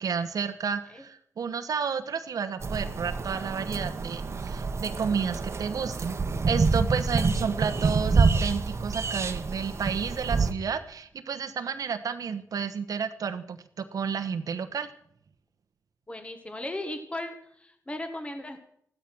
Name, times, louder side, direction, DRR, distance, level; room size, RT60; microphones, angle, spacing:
voice 1, 0.0-6.2 6.5-14.9, right 6 dB, 85° right, 9 dB, 1.1 m, -31 dB
sound 1, 2.6-10.5, right 4 dB, 50° right, 1.2 m, -27 dB
voice 2, 16.1-18.6, left 1 dB, 20° left, 7 dB, 1.6 m, -37 dB
14.5 x 12.0 x 6.1 m, 0.67 s
wide cardioid pair, 125°, 6 cm